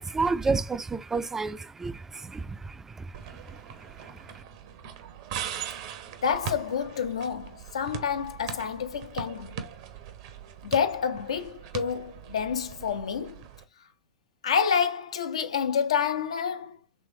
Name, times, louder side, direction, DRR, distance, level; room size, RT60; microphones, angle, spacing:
voice 1, 0.0-4.4, right 4 dB, 10° right, 0.3 m, -31 dB
sound 1, 3.1-13.6, right 8 dB, 55° right, 0.7 m, -40 dB
voice 2, 6.2-9.6 10.6-13.4 14.4-16.8, left 7 dB, 70° left, 0.5 m, -28 dB
3.2 x 3.2 x 2.7 m
figure-of-eight pair, 90°, 3 cm